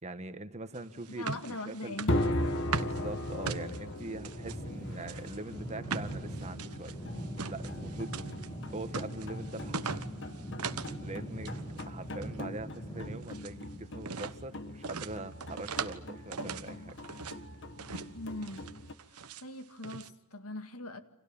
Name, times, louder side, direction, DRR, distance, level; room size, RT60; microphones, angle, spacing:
voice 1, 0.0-2.0 2.8-7.0 7.5-8.2 8.7-9.9 11.0-17.0 17.2-17.4, right 2 dB, 30° right, 1.5 m, -42 dB
sound 1, 0.7-4.6 5.0-11.0 11.3-11.9 12.1-13.6 14.0-14.4 14.8-16.0 16.3-17.4 17.8-18.1 18.4-19.4 19.8-20.1, right 5 dB, 85° right, 1.2 m, -40 dB
voice 2, 1.1-2.3 3.9-4.2 18.1-18.7 19.1-21.0, left 2 dB, 80° left, 2.0 m, -41 dB
sound 2, 2.1-18.9, left 1 dB, 55° left, 1.8 m, -39 dB
sound 3, 4.3-13.1, right 1 dB, 15° left, 7.5 m, -42 dB
29.5 x 27.5 x 7.2 m
head